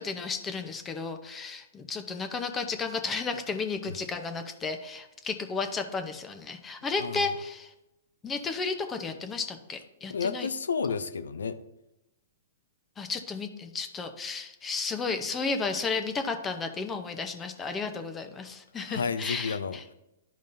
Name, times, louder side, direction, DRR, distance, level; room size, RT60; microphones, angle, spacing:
voice 1, 0.0-7.7 8.2-10.5 13.0-19.8, left 4 dB, 20° left, 0.7 m, -33 dB
voice 2, 7.0-7.3 10.1-11.6 18.8-19.8, left 5 dB, 80° left, 0.5 m, -31 dB
11.0 x 5.1 x 2.6 m
hypercardioid pair, 120°, 0 cm